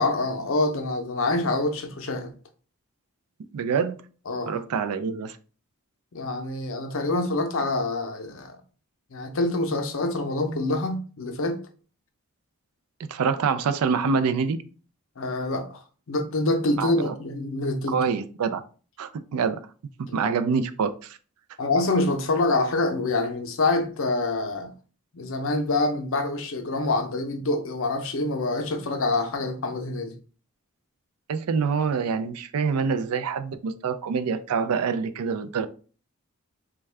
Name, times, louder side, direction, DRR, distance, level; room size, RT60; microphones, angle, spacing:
voice 1, 0.0-2.3 4.3-4.6 6.1-8.6 9.1-11.7 15.2-15.8 16.1-18.0 20.1-20.3 21.6-24.7 25.1-30.2, left 2 dB, 65° left, 0.6 m, -26 dB
voice 2, 3.5-4.0 4.5-5.4 13.1-14.6 16.8-17.1 17.9-18.6 19.0-19.6 20.0-21.2 31.3-35.7, right 5 dB, 80° right, 0.4 m, -26 dB
3.5 x 2.2 x 3.2 m
head